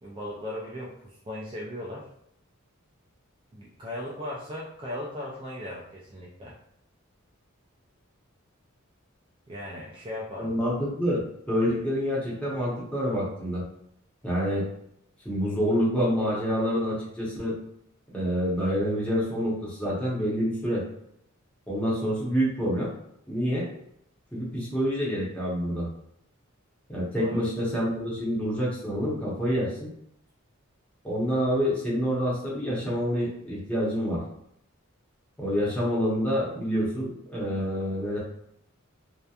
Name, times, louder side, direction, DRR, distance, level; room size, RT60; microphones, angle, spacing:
voice 1, 0.0-2.1 3.5-6.6 9.5-10.5 27.2-27.4, left 1 dB, 25° right, -4 dB, 0.3 m, -37 dB
voice 2, 10.4-13.6 14.2-14.7 15.2-17.6 18.1-20.8 21.7-22.9 23.3-23.7 24.3-25.9 26.9-29.9 31.0-34.2 35.4-38.2, equal, 5° left, -7 dB, 0.8 m, -27 dB
2.8 x 2.1 x 2.3 m, 0.74 s
head